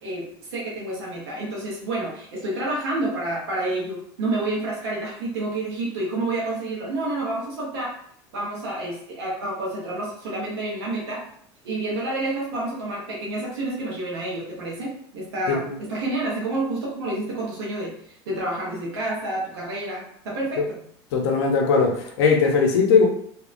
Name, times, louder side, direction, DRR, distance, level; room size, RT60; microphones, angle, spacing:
voice 1, 0.0-7.9 8.3-11.2 11.6-17.9 18.3-20.8, right 2 dB, 85° right, -5 dB, 0.9 m, -29 dB
voice 2, 21.1-23.1, left 5 dB, 80° left, 2 dB, 0.6 m, -19 dB
2.7 x 2.1 x 2.5 m, 0.66 s
hypercardioid pair, 90°, 14 cm